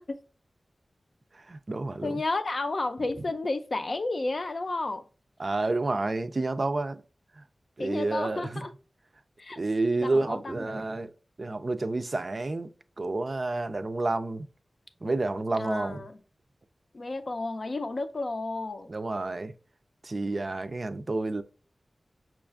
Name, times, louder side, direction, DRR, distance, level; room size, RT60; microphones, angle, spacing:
voice 1, 1.3-2.2 5.4-7.0 7.8-8.6 9.6-11.1 11.4-12.7 13.0-14.4 15.0-16.0 18.9-19.5 20.0-21.4, right 2 dB, 50° right, 0.3 m, -29 dB
voice 2, 2.0-5.0 7.8-8.7 9.4-9.6 10.0-10.8 15.5-16.2 16.9-18.9, left 2 dB, 55° left, 0.5 m, -32 dB
5.6 x 2.4 x 2.4 m
wide cardioid pair, 60°, 0 cm